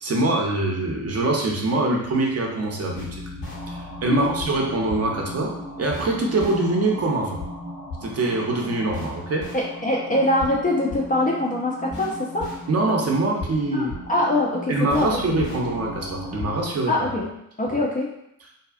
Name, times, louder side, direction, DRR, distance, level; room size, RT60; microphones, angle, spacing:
voice 1, 0.0-3.1 3.7-7.4 8.0-9.5 12.7-13.9 14.7-16.9, right 2 dB, 35° right, -1 dB, 0.7 m, -24 dB
sound 1, 2.9-16.6, left 1 dB, 65° left, 1.0 m, -36 dB
voice 2, 9.5-12.5 13.7-15.2 16.9-17.3 17.6-18.1, left 1 dB, 20° left, -3 dB, 0.4 m, -23 dB
2.7 x 2.3 x 2.4 m, 0.81 s
hypercardioid pair, 45°, 45 cm